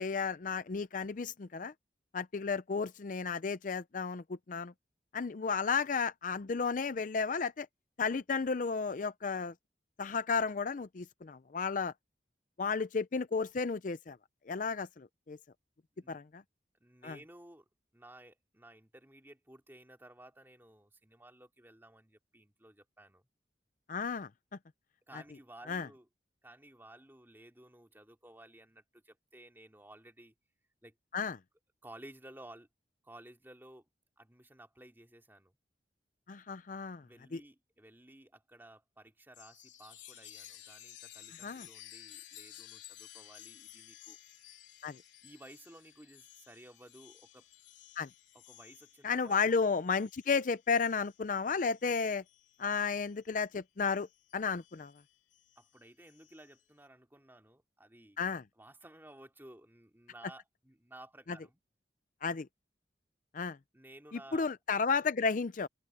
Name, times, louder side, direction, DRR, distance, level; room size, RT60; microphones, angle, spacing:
voice 1, 0.0-1.7 2.1-4.7 5.1-7.7 8.0-9.5 10.0-11.9 12.6-14.2 14.5-15.4 16.1-16.4 17.0-17.2 23.9-24.3 25.7-25.9 31.1-31.4 36.3-37.0 37.3-37.4 41.4-41.7 44.8-45.0 48.0-48.1 49.0-52.2 52.6-54.1 54.3-54.9 58.2-58.4 62.2-62.5 63.3-63.6 64.1-65.7, left 5 dB, 45° left, 0.5 m, -33 dB
voice 2, 16.8-17.6 17.9-23.2 25.1-26.1 26.4-30.3 30.8-30.9 31.8-32.7 33.0-33.8 34.2-35.6 37.0-44.2 45.2-47.5 48.3-49.5 55.6-58.2 58.6-61.6 63.7-64.5, right 1 dB, 10° right, 2.7 m, -55 dB
Chime, 39.3-53.3 53.8-56.6, left 12 dB, 85° left, 3.6 m, -55 dB
open air
head